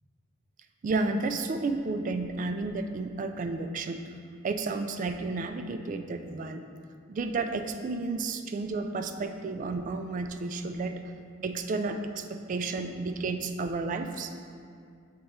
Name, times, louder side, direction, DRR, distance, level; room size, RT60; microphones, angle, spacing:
voice 1, 0.8-4.0 4.4-6.6 7.1-11.0 11.4-14.3, right 3 dB, 40° right, 7 dB, 0.3 m, -32 dB
6.5 x 3.4 x 4.2 m, 2.3 s
head